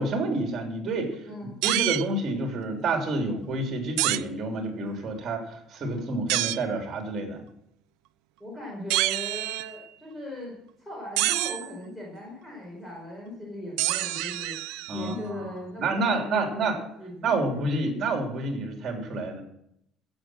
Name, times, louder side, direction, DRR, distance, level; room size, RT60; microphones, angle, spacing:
voice 1, 0.0-1.3 1.6-7.4 14.9-16.8 17.2-19.4, right 2 dB, 35° right, 3 dB, 3.1 m, -29 dB
Bended Metal sheet boing sounds, 1.6-2.1 4.0-4.2 6.3-6.6 8.9-9.9 11.2-11.7 13.8-15.1, right 18 dB, 85° right, 0.5 m, -27 dB
voice 2, 8.4-10.5 10.8-14.6 14.9-17.8, equal, 10° left, -3 dB, 4.7 m, -39 dB
16.0 x 7.5 x 7.6 m, 0.74 s
cardioid pair, 155°, 0 cm